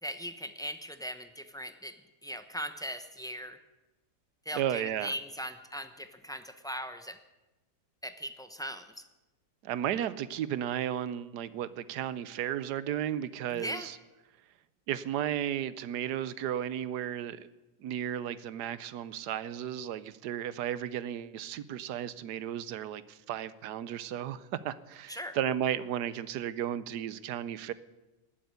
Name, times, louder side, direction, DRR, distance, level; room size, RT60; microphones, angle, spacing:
voice 1, 0.0-2.0 2.2-3.6 4.4-7.2 8.0-9.0 13.5-13.9 25.1-25.4, equal, 5° left, 8 dB, 0.5 m, -39 dB
voice 2, 4.5-5.1 9.6-14.0 14.9-17.5 17.8-27.7, right 10 dB, 85° right, 16 dB, 1.3 m, -34 dB
18.5 x 8.0 x 9.6 m, 1.1 s
omnidirectional pair, 1.7 m